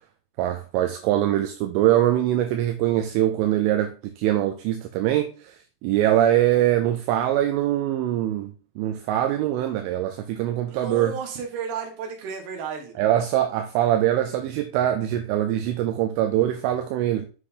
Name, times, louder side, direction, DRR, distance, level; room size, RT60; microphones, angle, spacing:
voice 1, 0.4-8.5 8.8-11.2 13.0-17.3, right 12 dB, 80° right, 3.0 m, -23 dB
voice 2, 10.7-12.9, right 5 dB, 65° right, 3.1 m, -33 dB
7.5 x 6.6 x 2.6 m
omnidirectional pair, 5.8 m